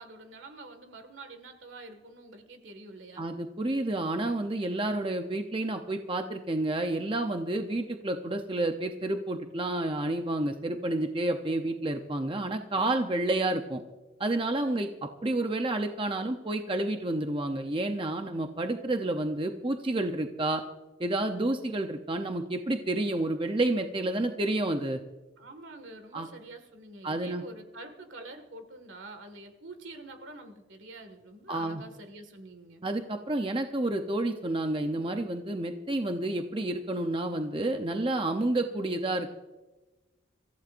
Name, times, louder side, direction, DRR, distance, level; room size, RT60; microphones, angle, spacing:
voice 1, 0.0-3.2 12.7-13.0 14.7-14.8 25.4-32.9, right 2 dB, 75° right, 7 dB, 1.9 m, -47 dB
voice 2, 3.2-13.8 14.2-14.9 15.2-20.6 21.0-25.0 26.1-26.3 27.0-27.4 31.5-31.8 32.8-39.3, right 2 dB, 25° right, 5 dB, 0.7 m, -30 dB
26.5 x 15.0 x 2.6 m, 1.1 s
head